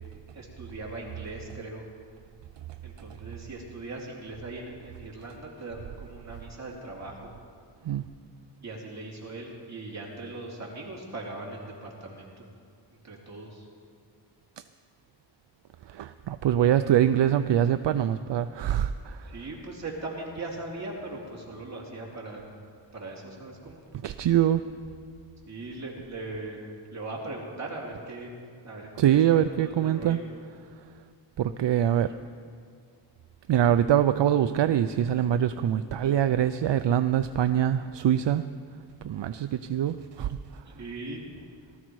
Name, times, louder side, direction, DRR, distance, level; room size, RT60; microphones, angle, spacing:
voice 1, 0.3-1.8 2.8-7.3 8.6-12.4 12.9-13.7 19.2-22.4 22.9-23.8 25.4-30.2 40.7-41.3, right 2 dB, 35° right, -3 dB, 2.9 m, -39 dB
voice 2, 15.9-19.3 24.0-24.6 29.0-30.2 31.4-32.1 33.5-38.4 39.0-40.4, right 10 dB, 70° right, 11 dB, 0.5 m, -24 dB
19.0 x 13.5 x 4.7 m, 2.2 s
wide cardioid pair, 150°, 45 cm